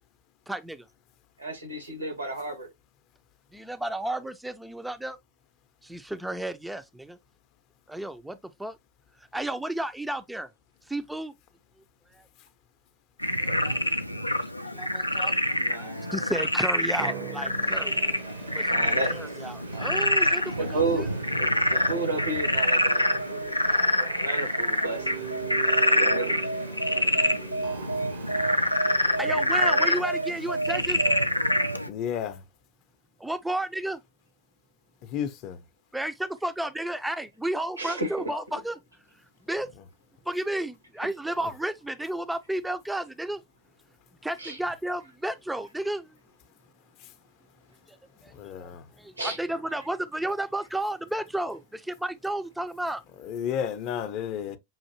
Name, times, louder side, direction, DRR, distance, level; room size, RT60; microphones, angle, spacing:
voice 1, 0.5-0.9 3.5-5.2 5.8-7.2 7.9-8.8 9.3-10.5 10.9-11.3 13.4-13.8 14.6-18.0 18.5-21.1 26.9-27.1 29.2-31.0 33.2-34.0 35.9-38.7 39.5-39.7 40.3-43.4 44.2-46.1 48.2-53.0, right 1 dB, 5° right, 0.4 m, -32 dB
voice 2, 1.4-2.7 14.7-14.8 15.6-16.3 18.6-19.1 20.6-21.1 21.4-23.5 23.9-25.1 25.9-26.5 37.8-38.3 44.4-44.6 49.2-49.4, right 2 dB, 85° right, 1.5 m, -32 dB
Frog, 13.2-31.9, left 1 dB, 90° left, 0.4 m, -26 dB
sound 1, 17.0-30.1, right 11 dB, 45° right, 0.7 m, -41 dB
voice 3, 31.9-32.4 35.0-35.6 48.3-48.8 53.2-54.6, left 8 dB, 40° left, 0.6 m, -32 dB
5.6 x 2.6 x 2.7 m
figure-of-eight pair, 90°, 0 cm